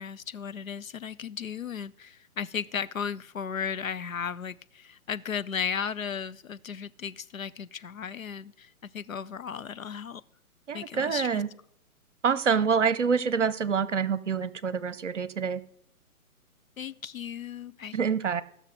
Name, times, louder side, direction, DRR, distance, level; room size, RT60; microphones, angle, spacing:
voice 1, 0.0-10.2 10.7-11.4 16.8-18.0, left 7 dB, 65° left, 13 dB, 0.6 m, -35 dB
voice 2, 10.7-11.5 12.2-15.6 17.9-18.4, right 6 dB, 55° right, 16 dB, 0.9 m, -26 dB
14.5 x 6.4 x 6.5 m, 0.70 s
figure-of-eight pair, 130°, 44 cm